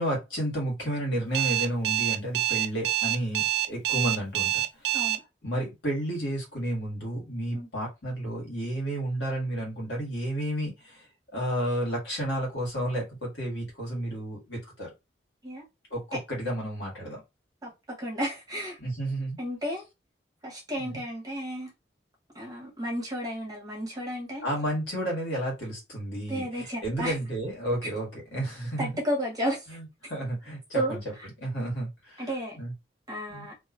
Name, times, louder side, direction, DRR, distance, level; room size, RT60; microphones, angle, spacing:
voice 1, 0.0-5.0 5.4-11.1 11.3-14.9 15.9-17.2 18.8-19.4 20.8-21.0 24.4-28.9 29.7-31.0 31.4-32.2 32.6-32.7 33.3-33.5, right 1 dB, 80° left, 1.5 m, -31 dB
Alarm, 1.3-5.2, right 13 dB, 70° right, 0.3 m, -26 dB
voice 2, 17.6-18.8 19.4-19.8 20.4-21.7 22.3-24.4 26.3-27.1 28.8-29.8 30.0-30.1 30.7-31.0 32.2-32.6 33.1-33.5, equal, 20° right, 1.0 m, -32 dB
2.6 x 2.3 x 2.4 m
head